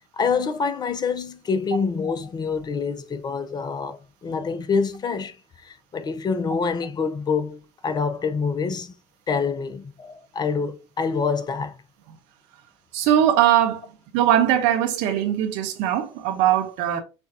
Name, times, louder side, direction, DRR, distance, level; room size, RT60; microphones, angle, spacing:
voice 1, 0.2-5.3 5.6-8.9 9.3-11.8, left 5 dB, 30° left, 0.6 m, -26 dB
voice 2, 12.9-13.8 14.1-17.0, right 11 dB, 60° right, 0.9 m, -20 dB
6.8 x 2.3 x 2.7 m
hypercardioid pair, 70°, 14 cm